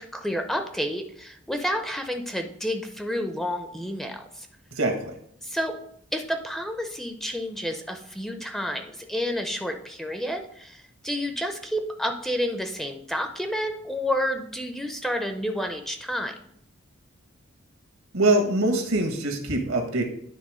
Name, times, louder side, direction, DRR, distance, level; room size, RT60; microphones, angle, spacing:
voice 1, 0.0-4.5 5.4-5.7 6.1-16.3, equal, ahead, 5 dB, 0.6 m, -30 dB
voice 2, 4.7-5.1 18.1-20.0, right 2 dB, 85° right, 4 dB, 1.6 m, -23 dB
9.8 x 3.5 x 4.9 m, 0.66 s
head